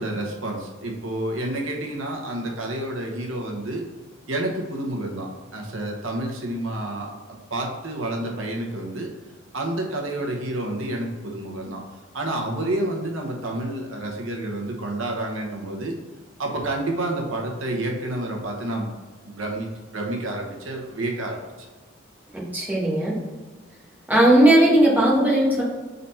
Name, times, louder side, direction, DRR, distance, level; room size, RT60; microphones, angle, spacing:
voice 1, 0.0-3.8 4.3-9.1 9.5-11.8 12.1-16.0 16.4-18.9 19.2-21.4, right 1 dB, 90° right, 0 dB, 1.1 m, -29 dB
voice 2, 22.3-23.1 24.1-25.6, right 1 dB, 10° right, -5 dB, 1.5 m, -17 dB
4.3 x 4.1 x 5.5 m, 1.4 s
head